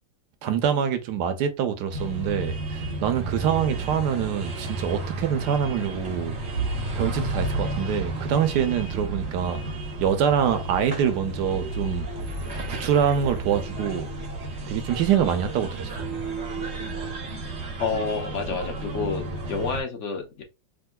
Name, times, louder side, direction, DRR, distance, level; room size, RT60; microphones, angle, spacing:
voice 1, 0.4-6.3 6.9-9.6 10.0-12.1 12.5-14.1 14.7-16.1, right 8 dB, 70° right, 1.1 m, -25 dB
sound 1, 1.9-19.8, right 2 dB, 50° right, 0.9 m, -32 dB
voice 2, 17.8-19.2 19.5-20.4, left 4 dB, 50° left, 0.9 m, -28 dB
3.6 x 2.7 x 2.2 m
omnidirectional pair, 2.0 m